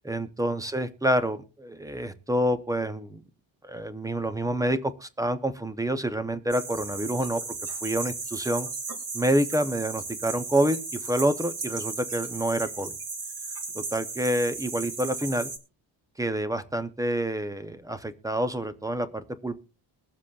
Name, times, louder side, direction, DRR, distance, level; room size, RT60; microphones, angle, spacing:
voice 1, 0.0-3.2 3.6-7.4 7.7-8.7 9.1-12.9 13.7-15.5 16.2-19.6, right 1 dB, 10° right, 11 dB, 0.4 m, -28 dB
sound 1, 6.5-15.6, right 4 dB, 50° right, 2.1 m, -35 dB
22.0 x 7.4 x 2.2 m, 0.36 s
cardioid pair, 170°, 46 cm